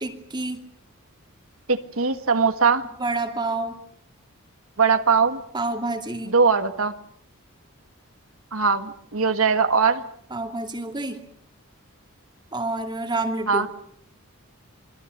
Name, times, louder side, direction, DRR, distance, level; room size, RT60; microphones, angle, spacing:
voice 1, 0.0-0.6 3.0-3.8 5.5-6.3 10.3-11.2 12.5-13.7, right 2 dB, 20° right, 5 dB, 2.5 m, -28 dB
voice 2, 1.7-2.8 4.8-5.4 6.3-6.9 8.5-10.0 13.5-13.7, right 5 dB, 75° right, 9 dB, 1.7 m, -20 dB
28.5 x 22.0 x 6.6 m, 0.64 s
head